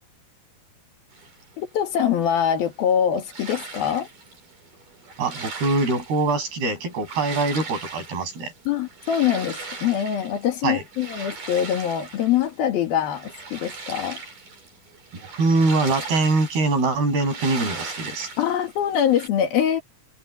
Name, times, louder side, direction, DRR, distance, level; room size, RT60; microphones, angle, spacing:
sound 1, 1.1-19.3, right 4 dB, 55° right, 8.5 m, -39 dB
voice 1, 1.6-4.1 8.7-14.2 18.4-19.8, left 9 dB, 70° left, 3.8 m, -23 dB
voice 2, 5.2-8.5 10.6-10.8 15.1-18.3, right 3 dB, 75° right, 9.8 m, -23 dB
omnidirectional pair, 4.5 m